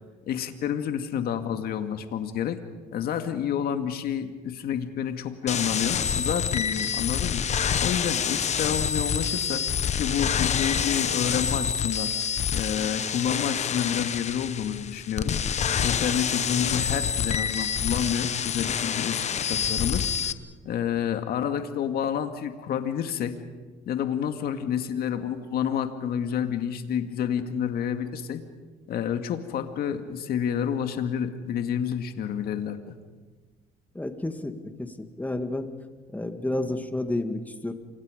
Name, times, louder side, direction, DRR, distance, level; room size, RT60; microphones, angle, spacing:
voice 1, 0.3-2.6 2.9-7.5 7.8-9.6 10.0-12.1 12.5-15.4 15.8-20.0 20.6-23.4 23.9-28.4 28.9-33.0, left 8 dB, 65° left, 7 dB, 2.1 m, -29 dB
sound 1, 5.5-20.3, left 7 dB, 40° left, 1.1 m, -27 dB
voice 2, 33.9-34.5 34.8-35.7 36.1-37.7, left 1 dB, 10° left, 7 dB, 2.1 m, -30 dB
29.5 x 25.5 x 5.2 m, 1.4 s
cardioid pair, 110°, 17 cm